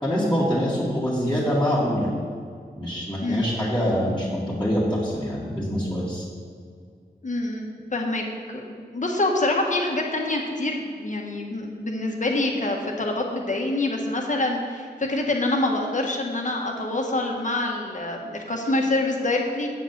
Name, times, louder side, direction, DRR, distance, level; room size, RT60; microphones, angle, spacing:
voice 1, 0.0-2.1 2.7-6.2, equal, 5° left, -10 dB, 2.3 m, -24 dB
voice 2, 7.2-19.8, left 2 dB, 45° left, 0 dB, 1.5 m, -26 dB
8.6 x 5.1 x 7.5 m, 2.2 s
wide cardioid pair, 70°, 18 cm